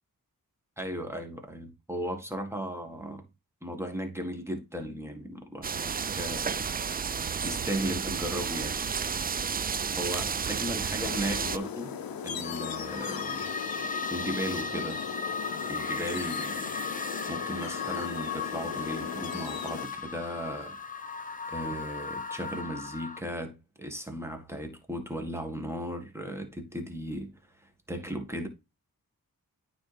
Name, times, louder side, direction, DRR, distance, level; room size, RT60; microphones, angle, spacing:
voice 1, 0.8-3.2 3.6-6.7 7.4-8.8 10.0-12.0 12.2-13.5 14.1-15.0 15.7-16.7 17.3-20.8 21.5-27.3 27.6-28.5, equal, 5° right, 1.7 m, -36 dB
sound 1, 5.6-11.6, right 6 dB, 25° right, 0.3 m, -31 dB
sound 2, 11.0-19.9, left 7 dB, 80° left, 0.7 m, -38 dB
sound 3, 12.4-23.2, left 4 dB, 25° left, 1.0 m, -36 dB
9.0 x 4.0 x 3.4 m
cardioid pair, 60°, 35 cm